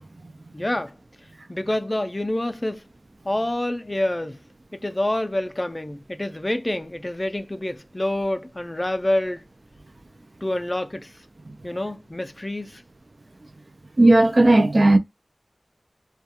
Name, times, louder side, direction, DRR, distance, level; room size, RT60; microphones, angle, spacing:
voice 1, 0.5-0.9 1.5-2.8 3.2-4.4 4.7-9.4 10.4-11.2 11.6-12.8, left 1 dB, 30° left, 0.4 m, -27 dB
voice 2, 14.0-15.0, right 2 dB, 60° right, 0.4 m, -15 dB
2.3 x 2.2 x 2.7 m
wide cardioid pair, 55°, 0 cm